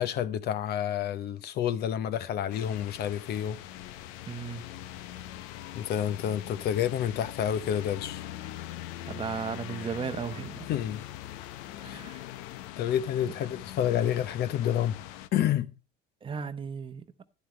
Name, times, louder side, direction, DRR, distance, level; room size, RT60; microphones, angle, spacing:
voice 1, 0.0-3.6 5.7-8.2 10.7-11.0 11.8-12.0 12.8-15.0 15.3-15.7, left 10 dB, 55° left, 0.8 m, -29 dB
sound 1, 2.5-15.3, left 13 dB, 85° left, 0.7 m, -42 dB
voice 2, 4.3-4.7 9.0-10.7 11.8-12.3 16.2-17.0, right 6 dB, 25° right, 0.8 m, -35 dB
11.5 x 11.0 x 3.2 m
cardioid pair, 120°, 20 cm